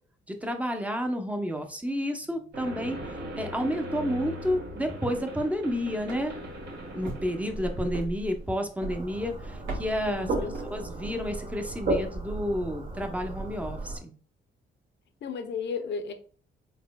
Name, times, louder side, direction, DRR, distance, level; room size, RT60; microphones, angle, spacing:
voice 1, 0.3-6.3 6.9-10.3 10.7-14.1, equal, 5° right, 0.8 m, -30 dB
sound 1, 2.5-8.6, equal, 60° right, 1.9 m, -39 dB
sound 2, 4.9-11.2, right 3 dB, 75° right, 1.6 m, -43 dB
sound 3, 8.9-14.0, right 2 dB, 45° right, 1.2 m, -34 dB
voice 2, 10.1-10.6 15.2-16.1, left 5 dB, 65° left, 0.7 m, -33 dB
4.2 x 3.8 x 2.2 m
cardioid pair, 90°, 20 cm